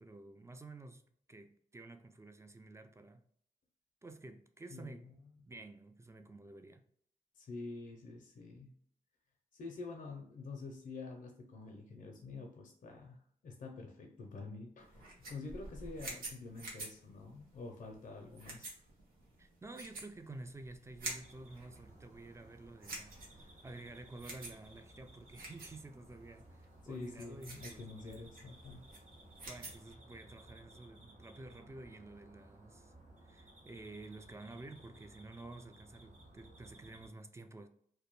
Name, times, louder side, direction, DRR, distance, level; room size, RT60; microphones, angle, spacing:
voice 1, 0.0-3.2 4.0-5.1 5.4-6.8 19.4-28.3 29.3-32.9 33.2-37.7, right 2 dB, 20° right, 0.3 m, -51 dB
voice 2, 4.7-5.1 7.3-8.7 9.5-18.8 26.8-28.9, left 3 dB, 65° left, 0.5 m, -47 dB
sound 1, 14.8-29.9, right 2 dB, 85° right, 0.7 m, -49 dB
sound 2, 21.0-37.1, right 1 dB, 55° right, 0.8 m, -59 dB
2.2 x 2.1 x 2.9 m
cardioid pair, 45°, 15 cm